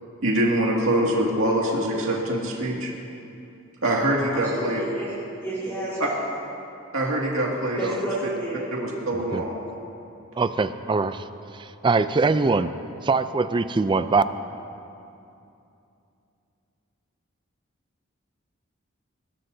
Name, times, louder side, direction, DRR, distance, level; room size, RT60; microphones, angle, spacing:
voice 1, 0.2-2.9 3.8-4.8 6.0-6.1 6.9-7.9 8.7-9.6, right 1 dB, 80° right, -3 dB, 2.2 m, -24 dB
voice 2, 4.3-5.1 5.3-6.1 7.8-8.6, right 1 dB, 10° left, -11 dB, 4.0 m, -31 dB
voice 3, 10.4-11.2 11.5-12.7 13.0-14.2, right 4 dB, 25° right, 12 dB, 0.4 m, -22 dB
21.0 x 20.5 x 2.7 m, 2.7 s
head